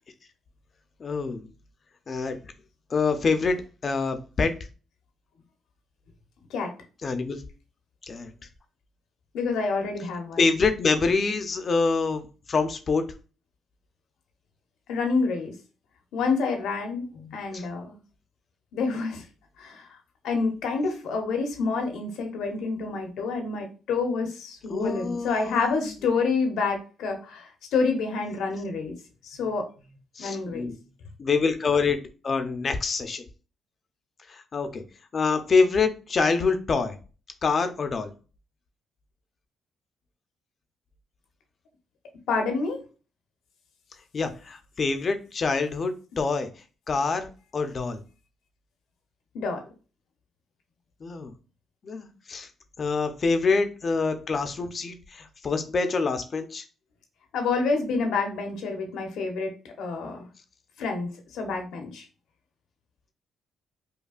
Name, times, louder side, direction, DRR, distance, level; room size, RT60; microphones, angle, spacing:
voice 1, 1.0-1.5 2.1-2.4 2.9-3.6 3.8-4.5 7.0-7.4 8.0-8.3 10.4-13.0 17.5-17.6 24.7-25.7 30.2-30.7 31.2-32.0 32.2-33.2 34.3-34.8 35.1-36.9 37.4-38.1 44.1-46.5 46.9-48.0 51.0-51.3 51.8-52.5 52.8-56.6, left 4 dB, 45° left, 8 dB, 0.6 m, -26 dB
voice 2, 9.3-10.4 14.9-15.5 16.1-18.0 18.7-19.2 19.6-20.0 20.2-29.0 29.2-29.6 30.2-30.7 42.3-42.8 49.3-49.6 57.3-59.5 59.8-60.2 60.8-62.1, left 4 dB, 85° left, 3 dB, 0.9 m, -28 dB
5.3 x 2.2 x 2.4 m, 0.35 s
cardioid pair, 90°, 0 cm